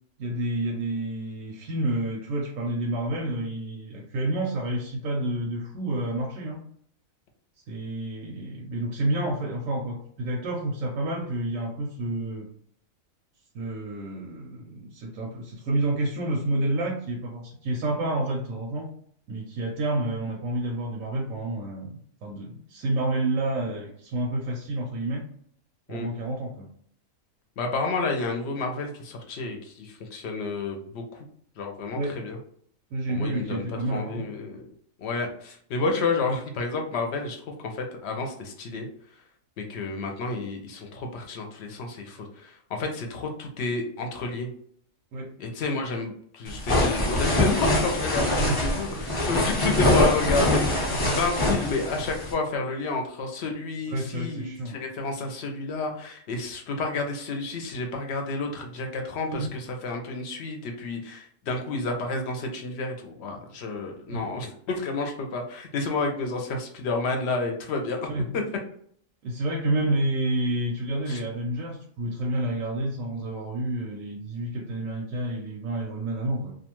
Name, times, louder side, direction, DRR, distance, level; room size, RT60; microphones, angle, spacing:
voice 1, 0.2-6.6 7.7-12.5 13.5-18.9 19.3-25.3 25.9-26.7 31.9-32.2 32.9-34.3 45.1-45.3 48.4-48.6 53.9-54.8 59.3-59.5 64.1-64.2 68.1-68.3 69.2-76.5, right 1 dB, 85° right, -1 dB, 1.0 m, -29 dB
voice 2, 27.6-31.0 31.6-32.4 33.1-33.6 33.9-34.7 35.0-38.9 39.6-44.5 45.4-68.1 68.3-68.4 71.1-71.2, left 3 dB, 60° left, 3 dB, 0.8 m, -30 dB
sound 1, 46.5-52.3, left 1 dB, 25° left, 0.9 m, -24 dB
2.5 x 2.3 x 2.9 m, 0.62 s
omnidirectional pair, 1.4 m